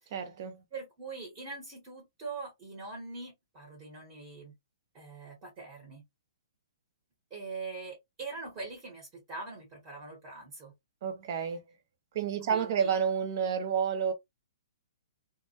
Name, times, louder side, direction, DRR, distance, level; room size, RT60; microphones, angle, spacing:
voice 1, 0.1-0.6 11.0-11.6 12.1-14.1, right 7 dB, 40° right, 0.6 m, -30 dB
voice 2, 0.7-4.5 4.9-6.0 7.3-10.7 12.5-12.9, right 3 dB, 20° right, 1.0 m, -43 dB
2.1 x 2.1 x 2.7 m
hypercardioid pair, 160°, 3 cm